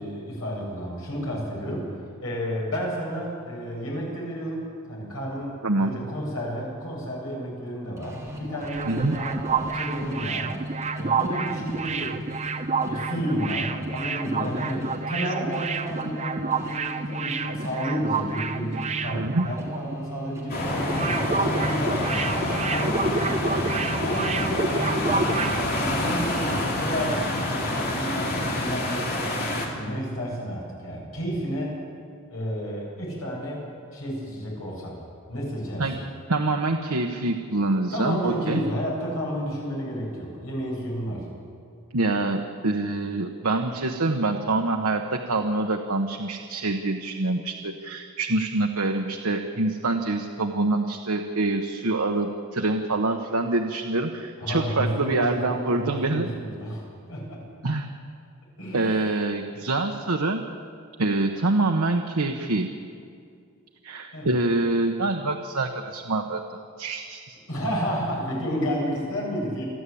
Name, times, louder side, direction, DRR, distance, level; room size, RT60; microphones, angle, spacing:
voice 1, 0.0-1.9 2.2-10.6 11.0-12.3 12.8-22.1 22.4-23.6 24.0-25.2 25.7-31.8 32.3-35.0 35.3-36.1 37.9-41.3 54.4-57.4 58.6-58.8 64.1-64.3 67.5-69.6, equal, 70° left, -2 dB, 7.8 m, -31 dB
sound 1, 8.0-24.1, equal, 15° right, 3.1 m, -37 dB
sound 2, 8.4-20.0 20.2-20.4 20.7-25.6, right 4 dB, 30° right, 0.8 m, -29 dB
voice 2, 8.9-9.2 19.1-19.5 35.8-35.9 36.3-38.6 41.9-56.3 57.6-57.9 58.7-60.4 61.0-62.7 63.8-67.4, right 2 dB, 85° right, 3 dB, 1.2 m, -25 dB
sound 3, 20.5-29.7, left 1 dB, 45° left, 3.3 m, -27 dB
28.5 x 11.5 x 8.6 m, 2.3 s
head